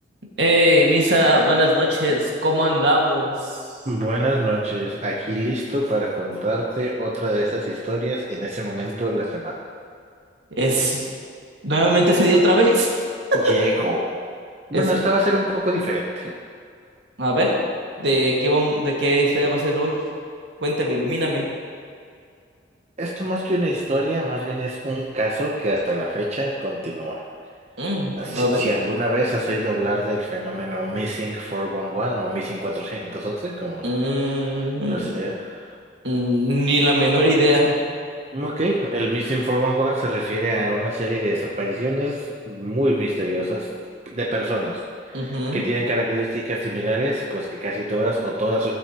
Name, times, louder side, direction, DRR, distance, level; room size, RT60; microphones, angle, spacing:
voice 1, 0.4-3.6 10.5-11.0 11.6-12.9 13.3-13.4 14.7-14.8 17.2-17.6 18.0-20.0 20.6-21.5 27.8-28.7 33.8-35.1 36.0-37.8 45.1-45.6, equal, 75° right, -2 dB, 1.9 m, -20 dB
voice 2, 3.9-9.6 13.3-14.2 14.7-16.4 23.0-27.2 28.1-33.9 34.2-35.8 38.3-43.7 44.1-48.8, right 1 dB, 35° right, -3 dB, 0.8 m, -25 dB
15.5 x 7.5 x 3.0 m, 2.3 s
head